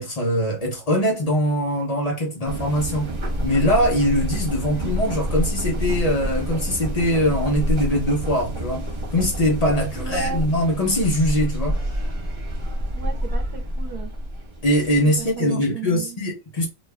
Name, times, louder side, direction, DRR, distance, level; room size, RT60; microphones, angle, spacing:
voice 1, 0.0-3.2 3.4-8.9 9.1-11.8 14.6-16.6, equal, 70° left, 0.3 m, -22 dB
sound 1, 2.5-15.3, equal, 50° right, 0.3 m, -27 dB
voice 2, 9.9-10.5 12.9-14.1 15.0-16.2, right 7 dB, 70° right, 1.2 m, -35 dB
3.1 x 2.1 x 3.4 m
omnidirectional pair, 1.9 m